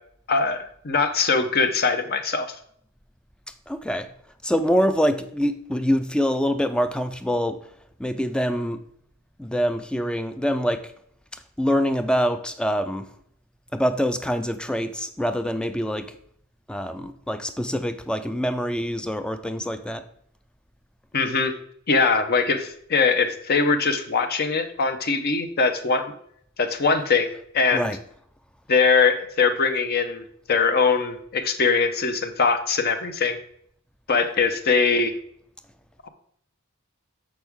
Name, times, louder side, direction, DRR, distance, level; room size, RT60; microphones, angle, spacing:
voice 1, 0.3-2.5 21.1-21.5 21.9-26.0 26.6-27.9 28.7-33.4 34.1-35.1 36.0-36.1, left 4 dB, 45° left, 8 dB, 0.7 m, -22 dB
voice 2, 3.7-4.1 4.4-7.6 8.0-8.8 9.4-10.9 11.3-13.1 13.7-16.2 16.7-20.0 27.3-27.4 27.7-28.0, equal, 5° left, 10 dB, 0.4 m, -25 dB
7.0 x 6.2 x 3.5 m, 0.68 s
head